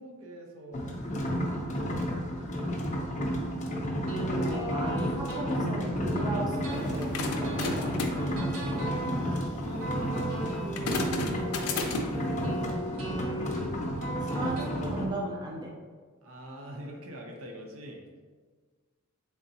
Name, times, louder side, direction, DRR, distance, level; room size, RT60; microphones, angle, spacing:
voice 1, 0.0-2.2 2.5-3.1 8.6-12.1 12.7-13.6 16.2-18.0, equal, 70° right, 1 dB, 0.6 m, -47 dB
sound 1, 0.7-15.1, equal, 35° left, 0.5 m, -32 dB
sound 2, 4.0-14.9, right 1 dB, 85° right, 1.1 m, -37 dB
voice 2, 4.3-7.1 7.4-7.5 14.3-15.7, right 1 dB, 20° right, -3 dB, 0.5 m, -35 dB
sound 3, 6.8-12.3, left 3 dB, 90° left, 0.5 m, -35 dB
3.8 x 3.4 x 2.8 m, 1.5 s
head